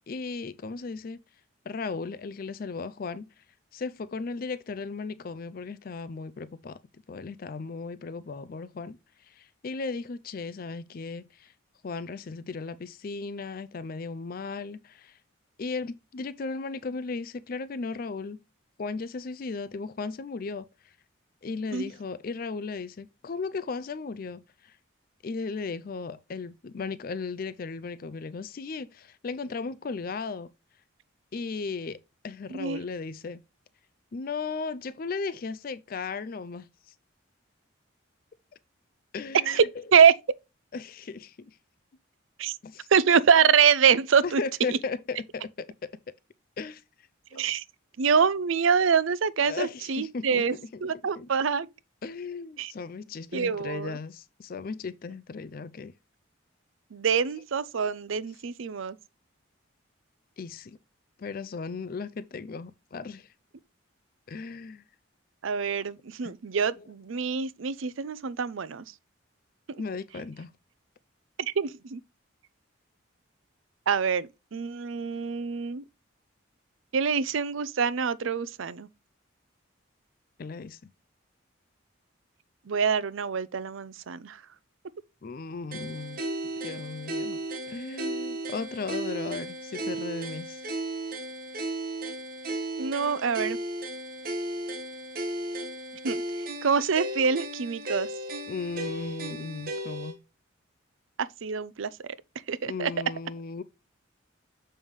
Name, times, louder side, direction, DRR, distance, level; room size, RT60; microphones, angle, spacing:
voice 1, 0.1-1.2 1.7-3.4 3.7-6.8 7.1-11.5 11.8-15.2 15.6-18.4 18.8-21.0 21.4-24.8 25.2-30.5 31.3-32.0 32.2-33.4 34.1-36.9 39.1-39.7 40.7-41.6 42.6-42.9 44.2-45.9 46.6-47.4 49.4-50.4 50.7-50.8 51.2-51.3 52.0-55.9 60.4-60.8 61.2-63.3 64.3-64.8 66.2-66.3 66.8-66.9 69.8-70.5 80.4-80.9 85.2-86.2 86.6-87.4 87.7-90.6 98.5-100.2 102.6-103.6, left 4 dB, 45° left, 0.4 m, -36 dB
voice 2, 42.9-44.4 47.3-47.6 48.0-51.7 52.6-52.7 53.3-54.0 56.9-59.0 65.4-68.8 71.4-72.0 73.9-75.8 76.9-78.9 82.7-84.4 92.8-93.6 96.0-96.2 96.6-98.1 101.2-102.1 102.5-102.9, right 6 dB, 70° right, 0.5 m, -25 dB
sound 1, 85.7-100.1, right 1 dB, 45° right, 1.4 m, -35 dB
7.0 x 5.5 x 3.1 m
head